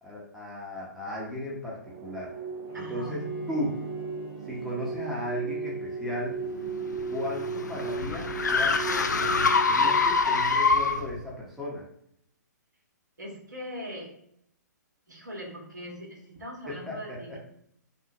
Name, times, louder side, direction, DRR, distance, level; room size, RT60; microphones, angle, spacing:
voice 1, 0.0-2.3 2.7-3.8 4.4-6.4 7.1-11.8 16.7-17.2, left 1 dB, 5° right, -5 dB, 1.1 m, -36 dB
sound 1, 1.9-10.0, right 4 dB, 35° right, 0.6 m, -36 dB
Bowed string instrument, 2.7-8.3, right 2 dB, 20° left, 0.7 m, -46 dB
voice 2, 2.7-3.3 13.2-14.1 15.1-17.4, equal, 75° right, -1 dB, 1.8 m, -41 dB
sound 2, 6.7-11.2, left 4 dB, 75° left, 0.5 m, -25 dB
5.6 x 2.7 x 3.0 m, 0.71 s
figure-of-eight pair, 120°, 10 cm